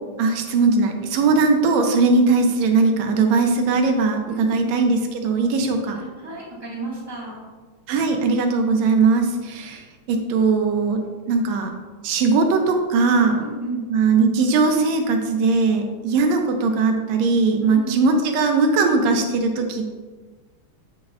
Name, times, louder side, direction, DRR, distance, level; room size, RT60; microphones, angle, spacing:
voice 1, 0.2-6.0 7.9-11.0 11.3-11.7 12.0-13.4 13.9-20.0, right 4 dB, 75° right, 4 dB, 1.7 m, -19 dB
voice 2, 4.3-4.8 5.9-7.4 13.4-13.9 17.6-18.2, right 2 dB, 10° right, -7 dB, 1.1 m, -33 dB
8.1 x 6.3 x 2.4 m, 1.3 s
omnidirectional pair, 3.5 m